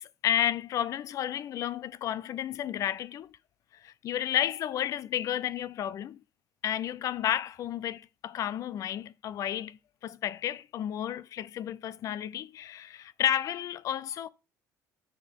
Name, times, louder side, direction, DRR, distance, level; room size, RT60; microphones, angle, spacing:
voice 1, 0.2-3.3 3.8-6.2 6.6-14.3, left 11 dB, 50° left, 0.5 m, -32 dB
9.7 x 3.7 x 3.6 m
cardioid pair, 120°, 7 cm